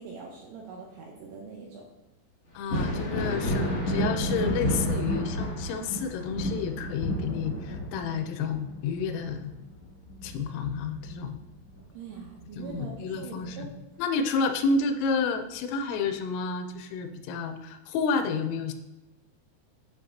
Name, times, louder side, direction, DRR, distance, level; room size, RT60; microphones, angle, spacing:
voice 1, 0.0-1.8 11.9-13.7, right 5 dB, 80° right, -1 dB, 2.5 m, -43 dB
voice 2, 2.5-9.5 10.2-11.4 12.6-13.7 14.0-18.7, left 5 dB, 90° left, 8 dB, 3.3 m, -30 dB
Thunder, 2.5-11.9 12.2-13.5 15.0-15.1 15.9-16.1, equal, 40° left, 1.7 m, -31 dB
10.0 x 5.1 x 2.8 m, 0.99 s
omnidirectional pair, 5.7 m